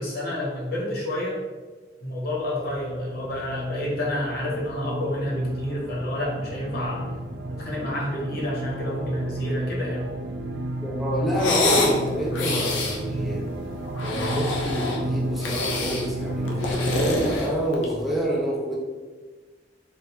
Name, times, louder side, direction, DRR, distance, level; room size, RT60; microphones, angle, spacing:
voice 1, 0.0-1.4 2.0-7.1 7.5-10.1, left 1 dB, 55° left, -4 dB, 0.9 m, -29 dB
sound 1, 2.4-17.4, right 1 dB, 75° right, 0.4 m, -32 dB
voice 2, 10.8-13.4 14.0-18.8, equal, ahead, -4 dB, 0.5 m, -27 dB
sound 2, 11.3-12.0 12.3-13.0 13.9-15.0 15.4-16.1 16.5-18.0, left 2 dB, 90° left, 0.5 m, -26 dB
3.6 x 2.4 x 2.8 m, 1.3 s
head